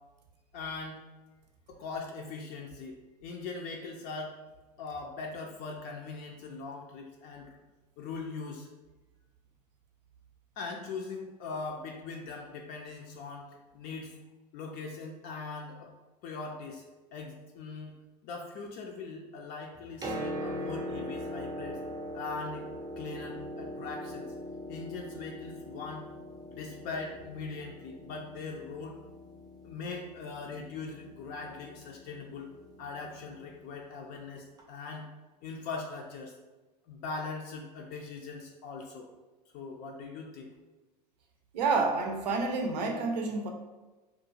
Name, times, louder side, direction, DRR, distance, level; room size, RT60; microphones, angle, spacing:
voice 1, 0.5-1.0 1.7-4.4 4.8-7.6 8.0-8.7 10.6-14.2 14.5-15.9 16.2-16.8 17.1-18.0 18.2-21.8 22.1-22.6 23.0-24.3 24.7-26.1 26.5-29.0 29.6-32.5 32.8-35.1 35.4-36.3 36.9-39.1 39.5-40.5, left 4 dB, 50° left, 1 dB, 0.4 m, -41 dB
Piano, 19.8-33.5 34.6-34.7, equal, 20° right, 0.5 m, -41 dB
voice 2, 41.5-43.5, right 4 dB, 85° right, 3 dB, 0.5 m, -29 dB
2.4 x 2.2 x 2.9 m, 1.2 s
hypercardioid pair, 85°, 21 cm